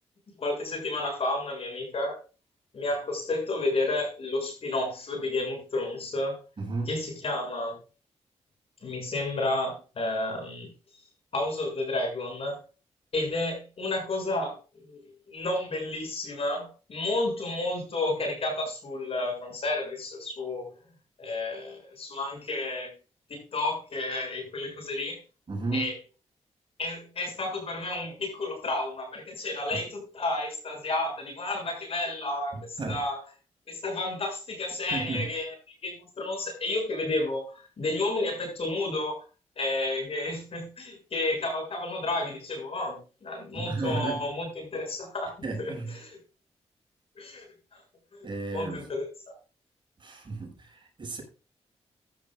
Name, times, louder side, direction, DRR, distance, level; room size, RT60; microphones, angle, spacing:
voice 1, 0.4-2.2 2.7-6.4 6.9-7.8 8.8-10.7 11.3-12.6 13.1-14.6 14.9-20.7 21.2-22.9 23.3-25.2 25.7-26.0 26.8-33.2 33.7-35.5 35.8-39.2 39.6-45.7 46.0-46.2 47.2-47.5 47.7-47.8 48.1-48.3 48.5-49.0, left 2 dB, 55° left, 7.2 m, -31 dB
voice 2, 6.6-6.9 25.5-25.9 29.7-29.8 32.5-33.0 34.9-35.3 43.5-44.3 45.4-46.0 48.2-48.9 50.0-51.2, right 3 dB, 45° right, 6.1 m, -33 dB
15.0 x 12.0 x 2.5 m
cardioid pair, 95°, 12 cm